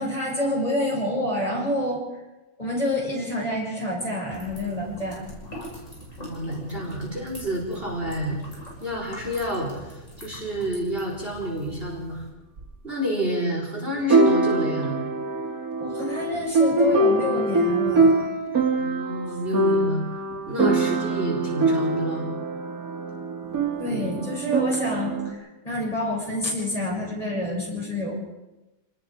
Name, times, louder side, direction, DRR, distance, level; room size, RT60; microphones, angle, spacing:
voice 1, 0.0-2.0 2.6-5.2 15.8-18.5 23.8-28.1, left 1 dB, 20° left, -3 dB, 7.2 m, -28 dB
sound 1, 4.3-12.3, equal, 45° left, 6.9 m, -42 dB
voice 2, 6.2-8.4 8.8-12.2 12.8-15.1 18.8-20.1 20.5-22.3 23.9-24.2, equal, 30° right, -2 dB, 4.3 m, -29 dB
sound 2, 12.6-12.7 14.1-25.3, right 2 dB, 55° right, 2.7 m, -23 dB
28.5 x 20.0 x 5.0 m, 1.0 s
omnidirectional pair, 1.9 m